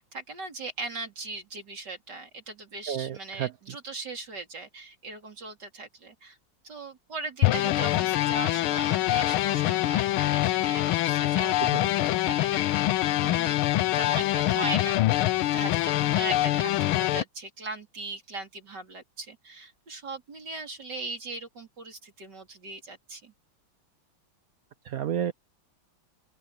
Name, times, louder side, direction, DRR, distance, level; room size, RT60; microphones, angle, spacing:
voice 1, 0.0-6.4 6.6-13.6 13.9-23.3, right 3 dB, 55° right, 4.4 m, -39 dB
voice 2, 2.9-3.5 24.8-25.3, right 9 dB, 80° right, 0.8 m, -30 dB
sound 1, 7.4-17.2, left 15 dB, 85° left, 1.6 m, -25 dB
open air
omnidirectional pair, 2.3 m